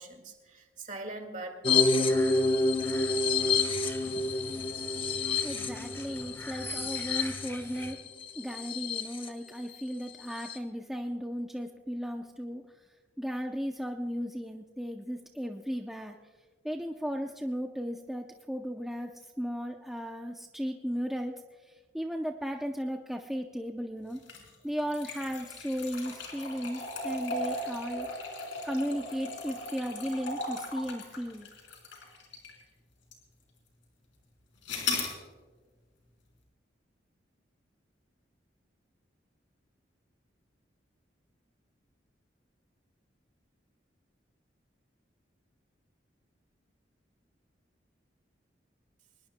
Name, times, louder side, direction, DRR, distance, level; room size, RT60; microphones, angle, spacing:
voice 1, 0.0-2.5, right 2 dB, 40° right, 5 dB, 1.9 m, -42 dB
sound 1, 1.6-9.3 9.7-9.8 10.1-10.6, left 3 dB, 30° left, 0.9 m, -29 dB
sound 2, 2.1-7.9, left 1 dB, 15° left, 1.4 m, -44 dB
voice 2, 5.4-8.0 8.4-12.8 13.2-16.2 16.6-21.3 21.6-24.2 24.6-28.1 28.6-31.5, equal, ahead, 2 dB, 0.6 m, -35 dB
sound 3, 24.2-32.6 33.1-33.2 34.7-35.1, left 2 dB, 80° left, 3.9 m, -37 dB
23.5 x 20.5 x 2.2 m, 1.4 s
head